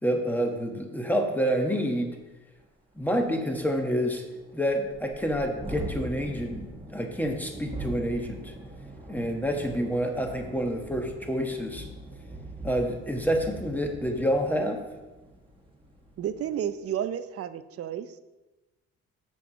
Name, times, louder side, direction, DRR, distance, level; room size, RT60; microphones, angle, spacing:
voice 1, 0.0-2.1 3.0-4.2 4.5-8.5 9.1-11.9 12.6-14.8, equal, 5° left, 3 dB, 1.3 m, -28 dB
Thunderstorm, 2.1-2.2 2.6-2.7 3.0-16.6, right 1 dB, 15° right, 1.2 m, -42 dB
voice 2, 16.2-18.1, right 9 dB, 50° right, 12 dB, 0.6 m, -31 dB
7.0 x 4.6 x 6.7 m, 1.1 s
cardioid pair, 90°, 30 cm